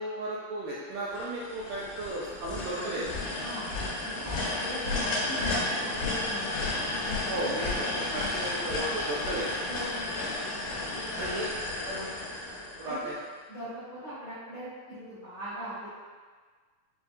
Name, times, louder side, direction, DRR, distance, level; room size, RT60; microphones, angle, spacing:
voice 1, 0.0-3.1 7.3-9.5 11.2-12.2 12.8-13.2, right 1 dB, 80° right, -7 dB, 1.9 m, -35 dB
sound 1, 1.1-13.2, left 2 dB, 90° left, 2.8 m, -32 dB
voice 2, 3.4-3.7 4.0-7.4 9.7-10.1 10.4-11.5 12.8-13.2 13.5-15.9, equal, 70° left, -15 dB, 1.2 m, -41 dB
6.4 x 2.6 x 2.4 m, 1.5 s
omnidirectional pair, 4.3 m